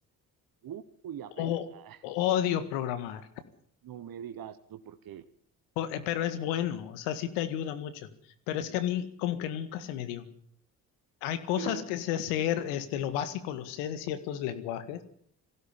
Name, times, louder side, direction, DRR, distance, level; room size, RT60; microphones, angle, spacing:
voice 1, 0.6-2.0 3.8-5.2 11.6-11.8, right 9 dB, 55° right, 11 dB, 1.3 m, -42 dB
voice 2, 1.4-1.7 2.0-3.3 5.8-8.1 8.5-10.3 11.2-15.0, left 11 dB, 80° left, 11 dB, 1.9 m, -31 dB
20.0 x 16.0 x 8.7 m, 0.63 s
hypercardioid pair, 50°, 43 cm